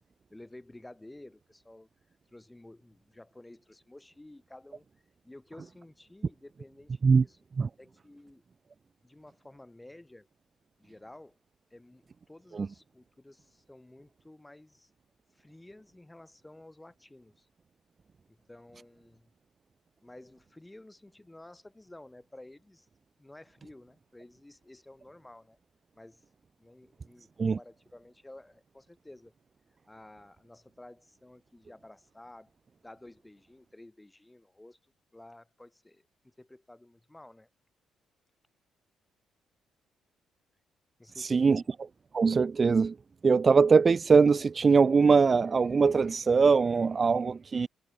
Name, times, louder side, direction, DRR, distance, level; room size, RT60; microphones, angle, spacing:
voice 1, 0.3-1.9 2.3-4.9 5.2-7.4 7.8-8.4 9.0-10.3 10.8-11.4 11.7-14.9 15.3-17.5 18.3-19.3 20.0-22.9 23.2-25.6 25.9-26.2 26.6-29.3 29.9-32.5 32.8-34.8 35.1-37.5 41.0-41.7, left 1 dB, 10° left, 4.7 m, -52 dB
voice 2, 41.2-41.6 42.1-43.0 43.2-47.7, right 5 dB, 35° right, 0.3 m, -22 dB
cardioid pair, 90°, 0 cm